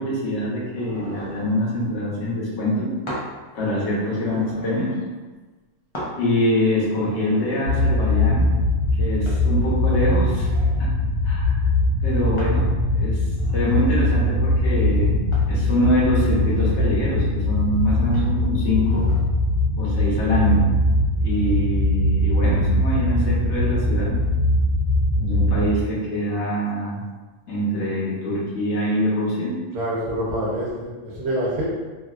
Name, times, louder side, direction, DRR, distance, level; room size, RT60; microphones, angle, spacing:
voice 1, 0.0-2.9 3.5-5.0 6.2-8.6 9.0-10.5 10.8-10.9 11.2-11.6 12.0-13.3 13.5-19.1 19.8-20.8 21.1-24.2 25.2-27.0 27.5-29.6, equal, 60° left, -7 dB, 1.2 m, -24 dB
sound 1, 0.8-1.6 3.1-3.3 3.7-5.0 5.9-6.2 6.7-7.9 9.3-9.4 10.0-10.9 12.4-12.6 13.2-14.2 15.3-15.5 16.2-17.0 18.1-18.3 18.7-19.2, equal, 35° left, 0.5 m, -38 dB
sound 2, 7.6-25.7, left 1 dB, 85° left, 1.3 m, -21 dB
voice 2, 29.7-31.7, right 1 dB, 55° right, -5 dB, 1.0 m, -26 dB
3.1 x 2.4 x 2.4 m, 1.3 s
omnidirectional pair, 1.4 m